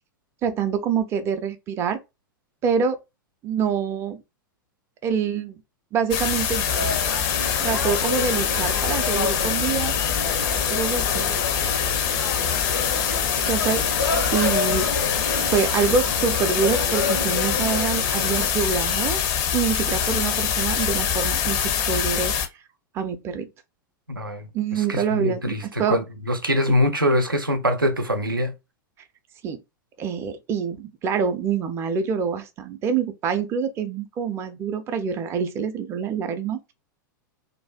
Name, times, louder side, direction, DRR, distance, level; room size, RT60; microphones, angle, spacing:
voice 1, 0.4-2.0 2.6-3.0 3.4-4.2 5.0-5.6 5.9-6.6 7.6-9.9 10.7-11.3 13.5-14.9 15.5-19.2 19.5-22.3 22.9-23.5 24.5-26.0 26.7-26.8 29.4-29.6 30.0-36.7, right 6 dB, 25° right, 0.4 m, -26 dB
sound 1, 6.1-22.5, left 8 dB, 35° left, 0.4 m, -24 dB
sound 2, 6.6-18.5, left 3 dB, 80° left, 0.7 m, -29 dB
voice 2, 24.1-28.5, equal, 85° right, 0.4 m, -24 dB
2.5 x 2.2 x 2.4 m
figure-of-eight pair, 95°, 11 cm